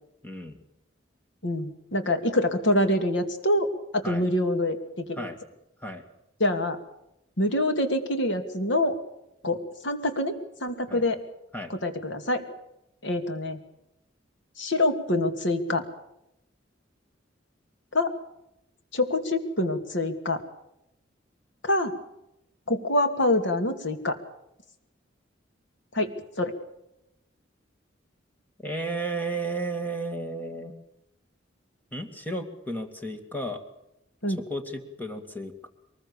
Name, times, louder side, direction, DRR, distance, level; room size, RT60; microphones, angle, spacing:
voice 1, 0.2-0.6 4.0-4.3 5.2-5.4 5.8-6.0 10.9-11.0 11.5-11.7 28.6-30.7 31.9-33.6 34.3-35.7, right 2 dB, 10° left, 6 dB, 2.4 m, -33 dB
voice 2, 1.4-3.7 3.9-5.2 6.4-6.8 7.4-9.0 9.4-11.2 11.7-12.4 13.0-13.6 14.6-15.8 17.9-18.1 18.9-20.4 21.6-21.9 22.7-24.2 25.9-26.5 34.2-34.4, left 1 dB, 75° left, 7 dB, 2.6 m, -26 dB
23.0 x 20.5 x 7.2 m, 0.84 s
head